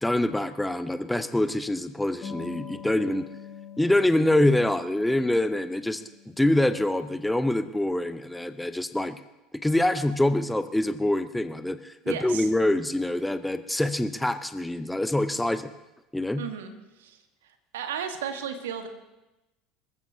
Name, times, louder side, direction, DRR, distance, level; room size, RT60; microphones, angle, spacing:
voice 1, 0.0-3.3 3.8-9.2 9.6-15.7 16.1-16.4, left 1 dB, 5° left, 12 dB, 0.7 m, -25 dB
sound 1, 2.2-8.4, left 7 dB, 40° left, 5.1 m, -46 dB
voice 2, 12.0-12.5 16.4-16.7 17.0-17.2 17.7-18.9, right 8 dB, 65° right, 7 dB, 1.4 m, -33 dB
25.0 x 14.0 x 2.8 m, 0.98 s
figure-of-eight pair, 70°, 0 cm